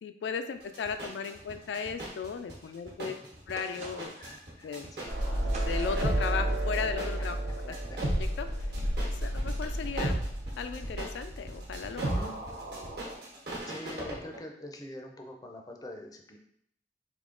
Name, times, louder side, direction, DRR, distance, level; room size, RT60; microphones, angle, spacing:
voice 1, 0.0-3.1 3.5-4.1 4.6-4.9 5.6-7.4 7.7-7.8 8.2-8.5 9.1-10.2 10.6-12.1, left 6 dB, 85° left, 8 dB, 0.3 m, -36 dB
sound 1, 0.6-14.4, right 1 dB, 65° right, 1.1 m, -43 dB
sound 2, 3.5-4.4 5.5-6.3, right 2 dB, 40° right, 0.6 m, -45 dB
voice 2, 4.2-5.2 7.6-8.0 9.1-9.2 11.9-12.3 13.7-16.4, left 1 dB, 20° left, 2 dB, 0.4 m, -44 dB
sound 3, 5.1-13.1, right 1 dB, 85° right, 0.8 m, -31 dB
3.5 x 3.0 x 3.8 m, 0.72 s
head